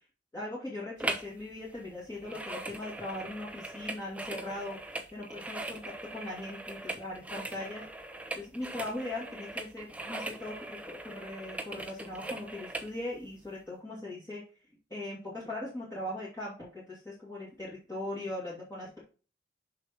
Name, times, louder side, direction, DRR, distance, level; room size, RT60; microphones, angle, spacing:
voice 1, 0.3-7.8 8.3-14.4 14.9-19.0, left 1 dB, 20° left, -7 dB, 2.2 m, -40 dB
sound 1, 1.0-1.4 1.6-12.9 13.4-13.5, right 2 dB, 10° right, 0.7 m, -40 dB
6.6 x 5.7 x 2.9 m, 0.35 s
head